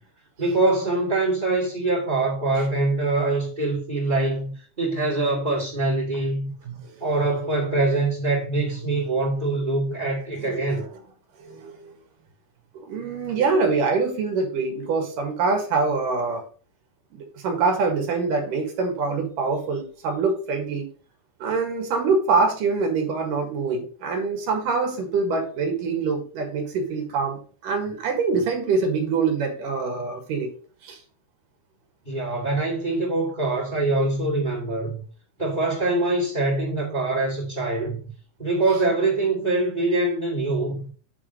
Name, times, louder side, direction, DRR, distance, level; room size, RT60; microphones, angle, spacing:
voice 1, 0.4-6.5 7.0-10.8 32.0-35.0 35.4-38.1 38.4-40.9, right 2 dB, 20° right, 1.2 m, -24 dB
voice 2, 10.4-11.0 11.4-11.9 12.7-16.4 17.1-20.9 21.4-30.5 30.8-31.0, right 4 dB, 60° right, 2.4 m, -25 dB
9.9 x 3.6 x 6.3 m
omnidirectional pair, 5.8 m